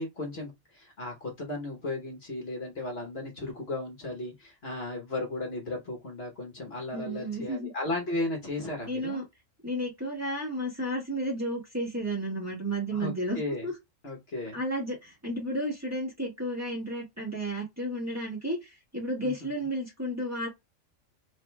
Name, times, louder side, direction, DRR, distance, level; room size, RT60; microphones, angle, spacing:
voice 1, 0.0-9.2 12.9-13.7 14.0-14.6 19.2-19.5, left 2 dB, 50° left, 1.4 m, -35 dB
voice 2, 6.9-7.7 8.9-9.2 9.6-13.7 14.5-20.5, right 1 dB, 10° right, 1.9 m, -32 dB
4.9 x 3.4 x 2.3 m
omnidirectional pair, 1.4 m